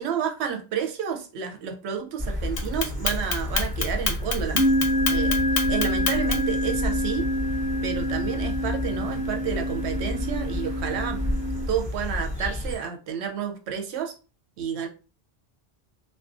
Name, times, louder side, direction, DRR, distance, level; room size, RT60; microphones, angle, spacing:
voice 1, 0.0-4.6 5.1-5.3 5.7-7.2 7.8-11.2 11.7-14.1 14.6-14.9, right 8 dB, 80° right, 4 dB, 0.9 m, -30 dB
sound 1, 2.2-12.8, left 1 dB, 5° right, 1.2 m, -31 dB
Clock, 2.6-6.6, left 5 dB, 65° left, 0.7 m, -26 dB
sound 2, 3.2-3.7 4.5-11.7, equal, 55° right, 0.9 m, -27 dB
2.4 x 2.0 x 2.4 m, 0.34 s
omnidirectional pair, 1.1 m